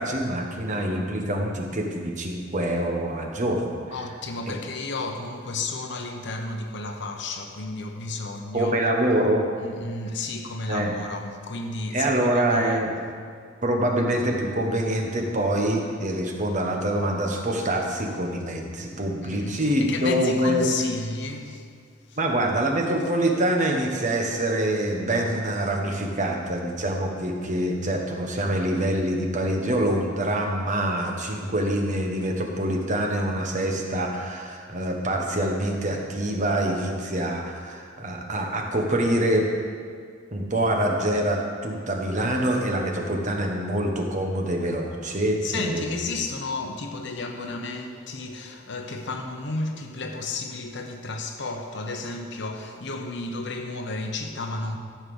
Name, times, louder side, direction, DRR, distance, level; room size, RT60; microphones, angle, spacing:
voice 1, 0.0-3.8 4.5-4.6 8.5-9.4 10.7-10.9 11.9-12.9 13.6-20.7 22.2-39.5 40.3-46.0, right 1 dB, 40° right, 1.3 m, -25 dB
voice 2, 3.9-8.8 9.6-12.9 19.2-21.7 22.1-22.2 45.4-54.8, left 3 dB, 60° left, 1.0 m, -32 dB
13.5 x 5.4 x 7.1 m
head